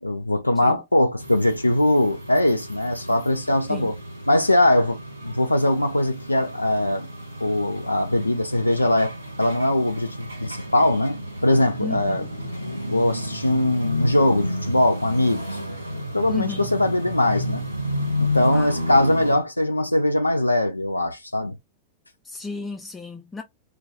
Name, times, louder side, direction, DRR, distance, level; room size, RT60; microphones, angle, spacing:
voice 1, 0.0-3.9 4.3-7.1 7.4-12.3 12.6-15.6 16.1-17.6 18.2-21.6, left 1 dB, 85° left, 0.3 m, -21 dB
sound 1, 1.2-19.3, left 1 dB, 85° right, 0.9 m, -32 dB
voice 2, 11.8-12.3 16.3-16.7 18.5-18.7 22.2-23.4, left 4 dB, 10° left, 0.4 m, -34 dB
2.2 x 2.0 x 2.8 m
figure-of-eight pair, 90°, 0 cm